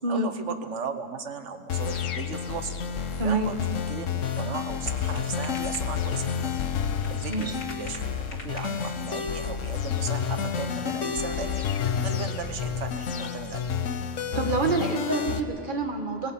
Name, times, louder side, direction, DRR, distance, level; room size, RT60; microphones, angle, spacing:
voice 1, 0.1-2.7 3.2-6.6 7.1-11.6 12.0-13.7, right 5 dB, 70° right, 9 dB, 1.4 m, -36 dB
sound 1, 1.7-15.4, left 7 dB, 80° left, 1.3 m, -30 dB
voice 2, 3.2-3.5 7.3-7.5 14.3-16.3, right 3 dB, 40° right, 4 dB, 2.0 m, -27 dB
sound 2, 4.4-9.1, left 2 dB, 55° left, 3.0 m, -46 dB
28.0 x 18.5 x 5.7 m, 2.8 s
omnidirectional pair, 1.3 m